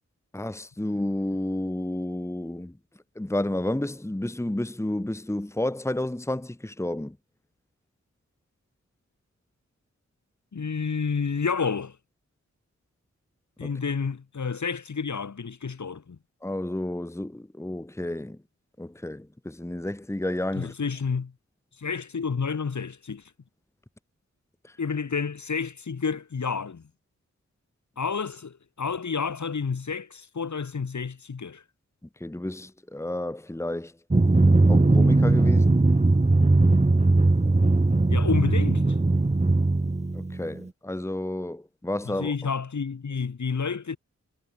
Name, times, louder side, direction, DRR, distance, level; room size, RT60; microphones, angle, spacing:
voice 1, 0.3-2.7 3.1-7.2 13.6-13.7 16.4-18.4 18.8-20.7 24.6-24.7 32.2-33.9 34.6-35.7 40.1-42.3, left 1 dB, 10° left, 1.5 m, -31 dB
voice 2, 10.5-12.0 13.6-16.2 20.5-21.3 21.8-23.2 24.8-26.8 28.0-31.6 38.1-38.9 42.1-44.0, left 5 dB, 75° left, 6.0 m, -30 dB
Drum, 34.1-40.6, right 2 dB, 25° right, 1.7 m, -20 dB
wide cardioid pair, 75°, 29 cm